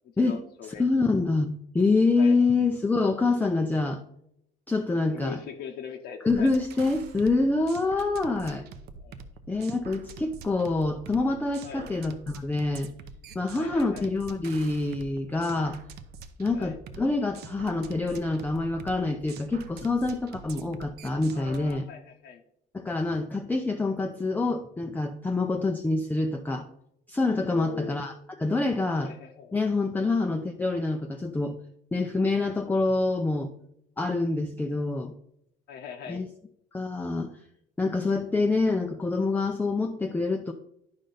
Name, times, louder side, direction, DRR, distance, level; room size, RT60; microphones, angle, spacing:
voice 1, 0.2-1.0 2.2-2.4 5.0-6.5 9.0-9.2 11.6-11.9 13.5-14.1 16.5-16.8 21.3-22.4 27.4-28.1 29.0-29.6 35.7-36.2, left 7 dB, 75° left, 2 dB, 0.9 m, -41 dB
voice 2, 0.8-4.0 4.7-5.4 6.2-8.7 9.5-12.9 13.3-15.8 16.4-21.8 22.7-26.7 27.1-28.1 28.4-29.1 29.5-31.6 31.9-33.5 34.0-35.1 36.1-36.3 36.7-37.4 37.8-40.5, left 3 dB, 10° left, 4 dB, 0.5 m, -26 dB
sound 1, 6.3-21.7, right 5 dB, 75° right, 0.8 m, -45 dB
10.0 x 5.2 x 3.9 m, 0.77 s
cardioid pair, 110°, 17 cm